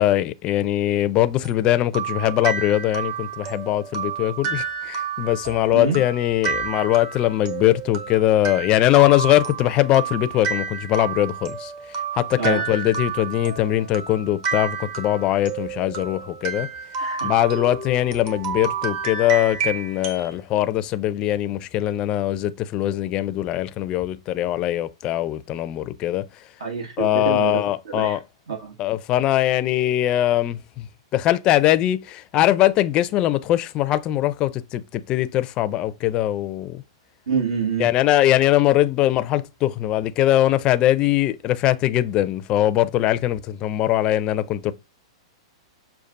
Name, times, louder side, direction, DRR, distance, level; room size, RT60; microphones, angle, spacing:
voice 1, 0.0-11.7 12.1-16.7 17.2-26.3 27.0-28.2 28.8-30.9 31.1-36.8 37.8-44.7, left 13 dB, 30° left, 0.4 m, -21 dB
sound 1, 1.4-20.3, right 5 dB, 45° right, 1.0 m, -30 dB
voice 2, 17.0-17.3 26.6-27.6 27.9-28.2 28.5-28.7 37.3-37.9, right 5 dB, 85° right, 1.6 m, -26 dB
6.5 x 2.4 x 2.5 m
hypercardioid pair, 135°, 3 cm